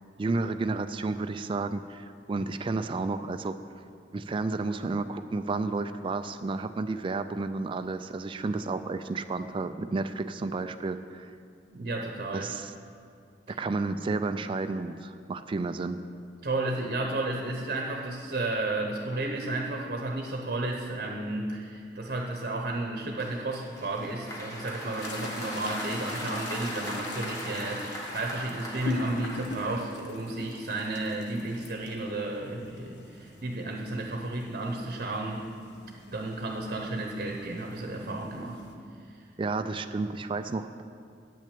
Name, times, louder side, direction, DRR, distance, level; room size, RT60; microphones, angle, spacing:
voice 1, 0.2-3.6 4.1-11.3 12.3-12.7 13.5-16.0 39.4-40.8, right 3 dB, 30° right, 9 dB, 0.3 m, -31 dB
voice 2, 11.7-12.5 16.4-35.5 36.1-38.6 39.1-39.2, right 2 dB, 50° right, 1 dB, 0.9 m, -33 dB
Applause, 23.2-30.3, equal, 20° left, 1.6 m, -39 dB
sound 1, 25.0-38.7, left 3 dB, 75° left, 1.1 m, -42 dB
8.8 x 6.2 x 8.4 m, 2.3 s
head